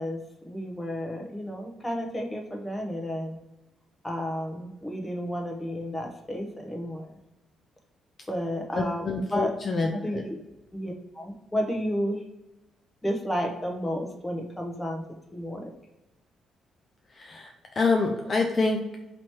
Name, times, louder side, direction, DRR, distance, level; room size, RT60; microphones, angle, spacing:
voice 1, 0.0-3.4 4.0-7.1 8.3-9.5 9.9-10.4 10.7-12.2 13.0-15.0 15.3-15.7, equal, 10° left, 1 dB, 0.9 m, -32 dB
voice 2, 8.7-10.2 17.1-19.0, left 3 dB, 40° left, 2 dB, 0.5 m, -27 dB
3.0 x 2.9 x 4.5 m, 0.95 s
cardioid pair, 90°, 0 cm